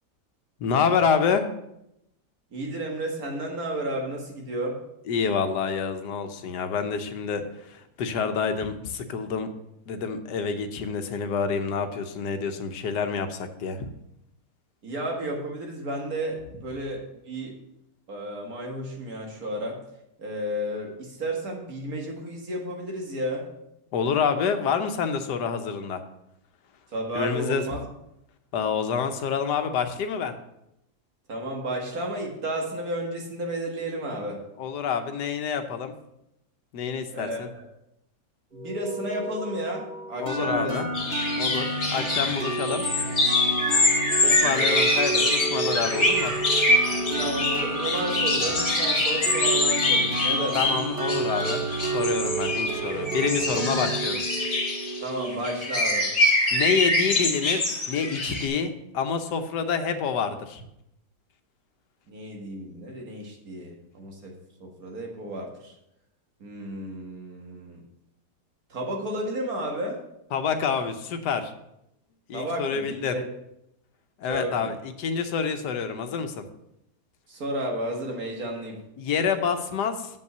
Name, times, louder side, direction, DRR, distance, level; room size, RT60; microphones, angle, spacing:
voice 1, 0.6-1.4 5.1-9.5 9.9-13.9 23.9-26.0 27.1-27.6 28.5-30.3 34.6-35.9 36.7-37.5 40.2-40.9 41.4-42.8 44.4-46.3 50.5-54.2 56.5-60.6 70.3-71.5 72.3-73.2 74.2-76.4 79.0-80.1, left 6 dB, 85° left, 8 dB, 1.4 m, -27 dB
voice 2, 2.5-4.8 14.8-17.6 18.1-19.8 20.2-23.5 26.9-27.9 31.3-34.4 37.1-37.7 38.5-40.8 42.1-42.2 44.2-44.6 47.2-50.8 55.0-56.1 62.1-64.3 64.6-65.7 66.4-67.8 68.7-70.0 72.3-73.2 74.3-74.7 77.3-78.8, right 1 dB, 60° right, 1 dB, 2.1 m, -32 dB
sound 1, 38.5-43.3, left 1 dB, 30° right, 2.6 m, -42 dB
sound 2, 40.3-55.9, right 3 dB, 45° right, 1.1 m, -30 dB
sound 3, 40.9-58.5, left 2 dB, 45° left, 2.3 m, -25 dB
7.5 x 5.5 x 6.7 m, 0.83 s
omnidirectional pair, 1.7 m